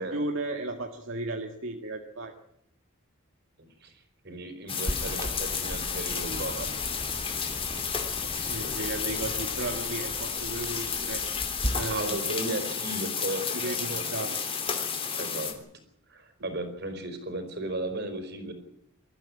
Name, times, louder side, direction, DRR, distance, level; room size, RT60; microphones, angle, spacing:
voice 1, 0.0-2.3 6.2-6.4 6.7-6.8 8.4-11.2 11.8-12.2 13.5-14.4, right 2 dB, 80° right, 3 dB, 1.9 m, -34 dB
voice 2, 3.6-6.8 7.6-8.9 11.9-14.3 15.1-15.5 16.1-18.5, right 1 dB, 55° right, 8 dB, 4.8 m, -36 dB
sound 1, 4.7-15.5, left 6 dB, 30° left, 3.1 m, -32 dB
sound 2, 4.9-11.9, equal, 15° right, 1.9 m, -38 dB
22.0 x 13.5 x 9.8 m, 0.72 s
head